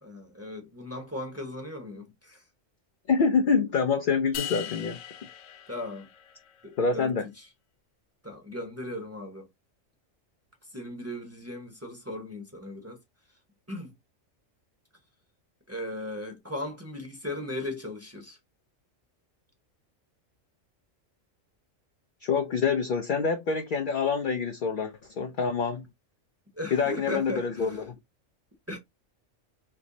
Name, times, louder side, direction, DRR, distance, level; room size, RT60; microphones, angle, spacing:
voice 1, 0.0-2.4 5.7-6.1 6.6-7.5 8.2-9.5 10.7-13.0 13.7-13.9 15.7-18.4 26.6-27.8 28.7-28.8, left 1 dB, 15° right, 0.8 m, -37 dB
voice 2, 3.1-5.0 6.8-7.3 22.2-25.8 26.7-27.9, left 5 dB, 60° left, 0.5 m, -26 dB
sound 1, 4.3-6.6, left 10 dB, 85° left, 1.0 m, -39 dB
3.4 x 3.0 x 2.6 m
omnidirectional pair, 1.3 m